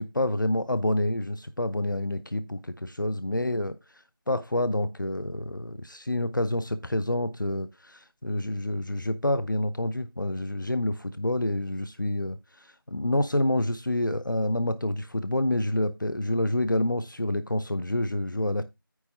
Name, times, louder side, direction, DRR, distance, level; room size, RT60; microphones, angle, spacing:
voice 1, 0.0-3.7 4.3-18.6, left 1 dB, 60° left, 0.7 m, -28 dB
9.5 x 3.6 x 5.5 m
figure-of-eight pair, 180°, 12 cm